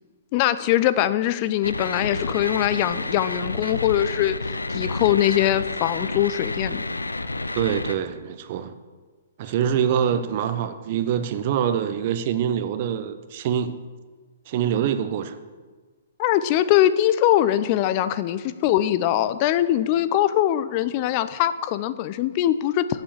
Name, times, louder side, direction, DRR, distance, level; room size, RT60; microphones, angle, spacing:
voice 1, 0.3-6.8 16.2-23.0, left 12 dB, 40° left, 14 dB, 0.6 m, -22 dB
sound 1, 1.6-7.9, left 2 dB, 85° left, 0.6 m, -30 dB
voice 2, 7.5-8.7 9.4-13.8 14.5-15.4, right 9 dB, 45° right, 10 dB, 0.9 m, -25 dB
8.6 x 7.8 x 7.2 m, 1.4 s
figure-of-eight pair, 120°, 0 cm